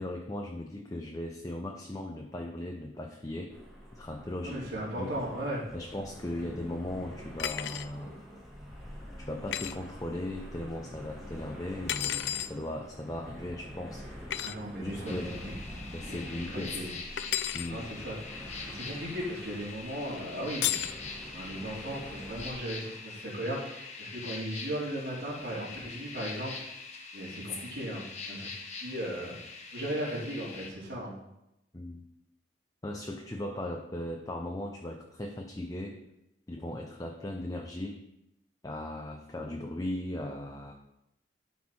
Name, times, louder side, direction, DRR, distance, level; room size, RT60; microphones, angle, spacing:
voice 1, 0.0-3.6 3.9-4.6 5.0-5.1 5.7-8.2 9.2-14.0 14.8-15.3 15.9-16.8 17.5-17.9 31.7-32.0 32.8-36.0 36.5-38.0 38.6-40.7, left 1 dB, 20° left, 2 dB, 0.6 m, -38 dB
sound 1, 3.5-22.5, equal, ahead, 1.7 m, -46 dB
voice 2, 4.4-5.6 14.4-15.5 16.1-16.9 17.7-18.3 18.7-20.8 21.2-26.6 27.1-28.5 28.8-29.3 29.7-31.1, right 1 dB, 65° right, -7 dB, 3.2 m, -37 dB
sound 2, 7.4-7.9 9.5-9.8 11.9-12.5 14.3-14.6 17.2-17.7 20.6-21.0, left 11 dB, 70° left, 0.4 m, -32 dB
sound 3, 15.1-30.7, left 4 dB, 40° left, 1.0 m, -43 dB
12.0 x 4.5 x 4.4 m, 0.86 s
head